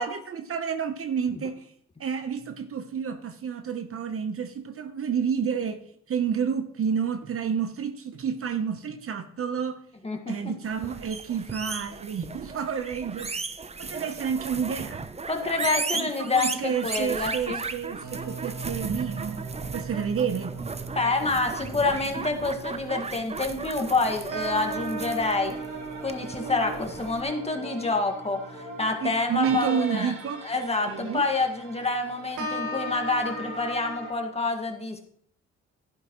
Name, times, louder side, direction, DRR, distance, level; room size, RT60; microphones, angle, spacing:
voice 1, 0.0-1.6 2.0-5.8 6.1-9.8 10.3-13.3 13.8-15.0 15.9-19.4 19.7-20.6 29.0-30.4 30.9-31.3, right 7 dB, 45° right, 1.0 m, -30 dB
sound 1, 10.7-27.2, right 4 dB, 20° right, 0.7 m, -36 dB
voice 2, 15.3-17.6 20.9-25.5 26.0-30.1 30.4-35.0, left 3 dB, 20° left, 1.9 m, -27 dB
sound 2, 18.0-34.1, right 2 dB, 85° right, 2.0 m, -38 dB
11.5 x 10.5 x 3.1 m
cardioid pair, 90°, 30 cm